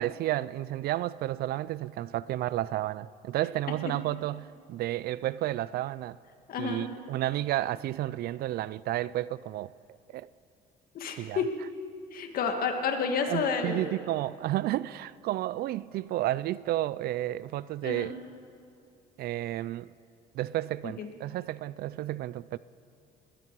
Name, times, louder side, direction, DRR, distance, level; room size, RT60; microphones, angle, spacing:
voice 1, 0.0-6.2 6.6-9.7 10.1-10.3 11.2-11.4 13.3-18.1 19.2-19.9 20.3-22.6, right 14 dB, 65° right, 0.4 m, -31 dB
voice 2, 6.5-6.9 10.9-11.5 12.1-13.9 17.8-18.2 21.0-21.1, left 5 dB, 60° left, 1.9 m, -30 dB
20.5 x 15.0 x 4.7 m
cardioid pair, 110°, 17 cm